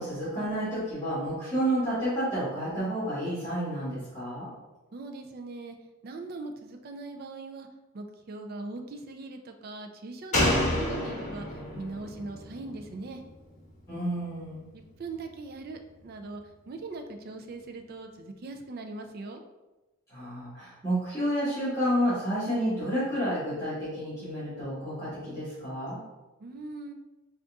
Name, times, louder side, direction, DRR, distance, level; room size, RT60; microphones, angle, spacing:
voice 1, 0.0-4.5 13.9-14.6 20.1-26.0, equal, 15° left, -11 dB, 1.4 m, -30 dB
voice 2, 4.9-5.8 6.0-7.7 7.9-13.2 14.7-19.4 26.4-26.9, right 3 dB, 45° right, 5 dB, 0.4 m, -40 dB
Slam, 10.3-13.8 14.1-14.2, left 1 dB, 35° left, 1.0 m, -30 dB
3.9 x 2.4 x 3.5 m, 1.1 s
head